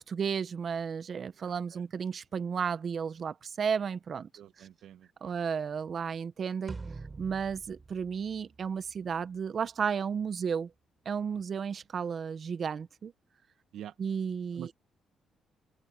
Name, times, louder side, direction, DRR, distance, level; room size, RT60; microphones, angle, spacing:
voice 1, 0.1-4.3 4.6-4.7 5.2-6.8 7.2-10.7 11.0-13.1 14.0-14.7, right 6 dB, 50° right, 1.0 m, -33 dB
voice 2, 1.3-1.8 4.4-5.4 11.3-11.4 13.7-13.9 14.5-14.8, right 11 dB, 80° right, 1.6 m, -47 dB
sound 1, 6.7-9.1, right 4 dB, 30° right, 6.6 m, -45 dB
open air
cardioid pair, 90°, 0 cm